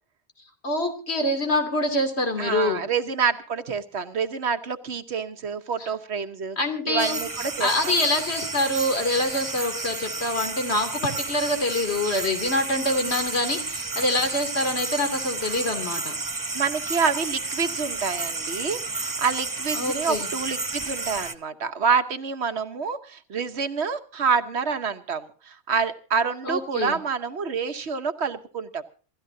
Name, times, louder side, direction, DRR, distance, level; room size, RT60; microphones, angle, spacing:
voice 1, 0.6-2.8 5.8-5.9 6.6-7.2 7.6-16.1 19.7-20.3 26.4-27.0, left 1 dB, 75° left, 6 dB, 3.0 m, -25 dB
voice 2, 2.4-6.6 6.9-7.9 16.5-28.8, right 5 dB, 80° right, 9 dB, 1.3 m, -27 dB
sound 1, 7.0-21.3, right 3 dB, 20° right, 0.7 m, -31 dB
27.5 x 14.5 x 2.7 m, 0.38 s
omnidirectional pair, 1.1 m